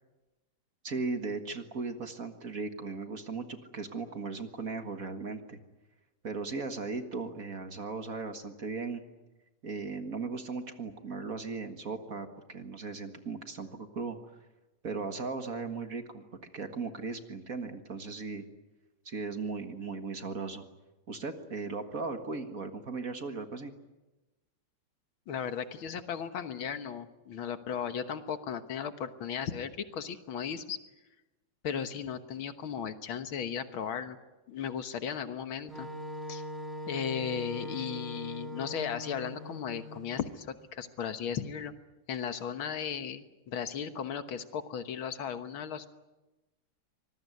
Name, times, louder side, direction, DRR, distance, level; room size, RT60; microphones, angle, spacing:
voice 1, 0.8-5.6 6.2-9.0 9.6-14.2 14.8-16.2 16.5-18.5 19.1-20.6 21.1-23.7, right 4 dB, 40° right, 7 dB, 1.9 m, -37 dB
voice 2, 25.3-30.8 31.6-34.2 34.5-35.9 36.3-36.4 36.9-40.5 40.7-41.7 42.1-45.9, left 7 dB, 70° left, 10 dB, 2.0 m, -36 dB
Wind instrument woodwind instrument, 35.7-40.4, equal, ahead, 3.7 m, -41 dB
25.0 x 20.5 x 9.5 m, 1.1 s
omnidirectional pair, 2.4 m